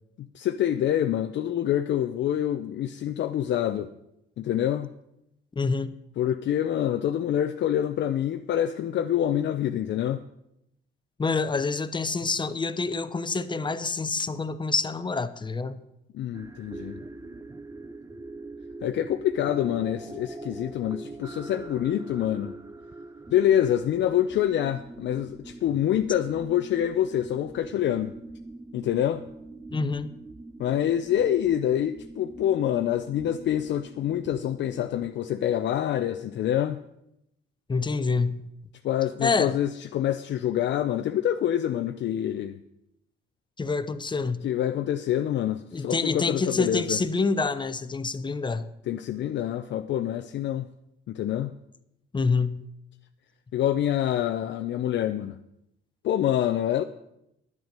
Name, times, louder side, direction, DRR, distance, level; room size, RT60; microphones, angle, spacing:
voice 1, 0.2-3.9 4.4-4.9 6.2-10.2 16.1-17.0 18.8-22.5 23.3-28.1 28.7-29.2 30.6-36.8 38.8-42.6 44.4-47.0 48.9-50.7 51.1-51.5 53.5-55.4 56.0-56.8, left 11 dB, 65° left, 0.5 m, -26 dB
voice 2, 5.6-5.9 11.2-15.8 29.7-30.1 37.7-38.5 39.2-39.5 43.6-44.5 45.7-48.6 52.1-52.6, left 4 dB, 25° left, 0.7 m, -27 dB
sound 1, 16.3-35.2, right 2 dB, 15° right, 0.6 m, -43 dB
11.0 x 7.9 x 6.7 m
cardioid pair, 90°, 20 cm